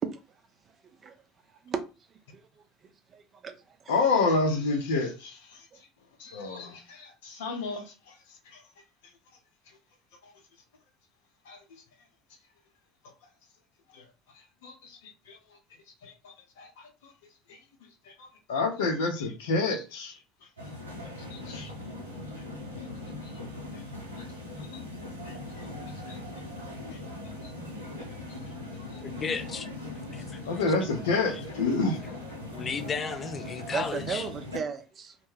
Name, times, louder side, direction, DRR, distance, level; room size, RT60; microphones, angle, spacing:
voice 1, 0.7-1.2 1.5-1.8 2.1-4.0 5.7-5.8 33.7-35.2, right 6 dB, 40° right, 0.5 m, -36 dB
voice 2, 3.9-5.6 6.2-7.9 8.5-8.6 10.2-10.3 11.5-11.6 13.9-14.0 14.6-15.4 16.0-16.9 17.5-17.6 18.1-20.1 21.3-21.7 23.2-23.3 25.2-25.7 26.0-26.2 28.3-28.4 30.4-32.1, left 3 dB, 70° left, 0.7 m, -29 dB
sound 1, 20.6-34.6, left 2 dB, 90° right, 0.6 m, -40 dB
voice 3, 29.0-29.7 30.1-30.4 32.5-34.3, left 5 dB, 35° left, 0.5 m, -34 dB
2.2 x 2.1 x 3.1 m
figure-of-eight pair, 60°, 0 cm